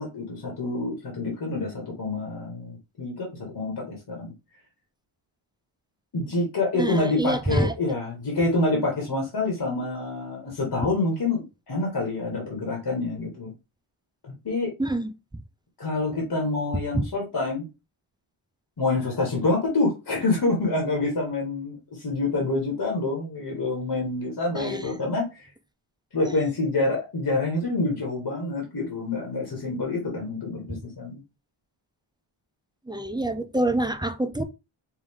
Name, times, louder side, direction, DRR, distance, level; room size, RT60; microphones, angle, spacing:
voice 1, 0.0-3.3 3.5-4.3 6.1-13.5 14.2-14.7 15.8-17.7 18.8-25.5 26.1-31.2, left 2 dB, 50° left, 1.6 m, -27 dB
voice 2, 6.8-8.0 14.8-15.1 16.9-17.0 24.5-24.9 26.2-26.4 30.7-30.8 32.9-34.4, right 1 dB, 10° right, 0.4 m, -27 dB
4.9 x 2.6 x 3.6 m
wide cardioid pair, 105°, 49 cm